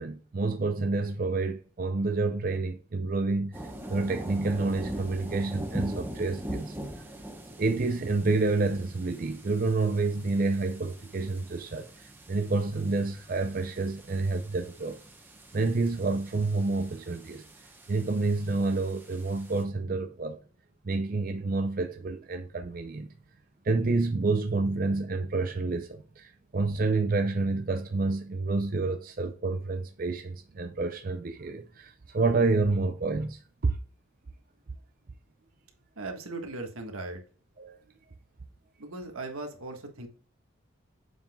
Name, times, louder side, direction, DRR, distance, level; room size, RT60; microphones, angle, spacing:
voice 1, 0.0-3.6 3.9-6.7 7.6-15.0 15.5-17.4 17.9-20.4 20.8-23.1 23.6-33.8 37.6-37.8, right 3 dB, 40° right, 0.5 m, -29 dB
sound 1, 3.5-19.6, right 1 dB, 10° right, 0.9 m, -42 dB
voice 2, 36.0-37.2 38.8-40.1, right 2 dB, 90° right, 1.5 m, -38 dB
7.1 x 5.7 x 2.3 m
head